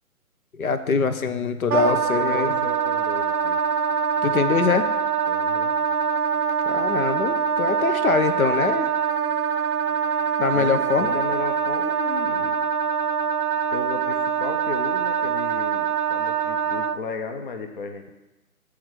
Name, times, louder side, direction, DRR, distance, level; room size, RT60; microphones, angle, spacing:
voice 1, 0.5-2.5 4.2-4.9 6.7-8.9 10.4-11.2, left 5 dB, 70° left, 9 dB, 0.8 m, -23 dB
voice 2, 1.7-3.6 5.3-5.7 10.5-12.6 13.7-18.1, left 4 dB, 35° left, 6 dB, 0.6 m, -34 dB
Wind instrument woodwind instrument, 1.7-17.0, right 6 dB, 85° right, 0.5 m, -24 dB
7.1 x 4.7 x 6.2 m, 1.0 s
figure-of-eight pair, 135°, 44 cm